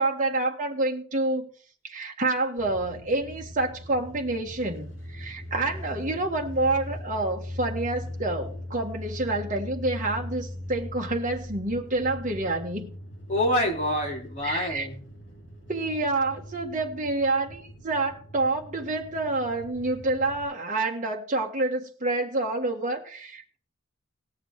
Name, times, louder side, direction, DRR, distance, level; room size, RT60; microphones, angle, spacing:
voice 1, 0.0-1.5 1.8-12.9 14.4-14.9 15.7-23.6, right 2 dB, 40° right, 1.5 m, -28 dB
sound 1, 2.6-20.4, left 1 dB, 60° left, 3.4 m, -40 dB
voice 2, 13.3-15.0, left 1 dB, 35° left, 3.1 m, -26 dB
18.5 x 6.6 x 4.7 m
head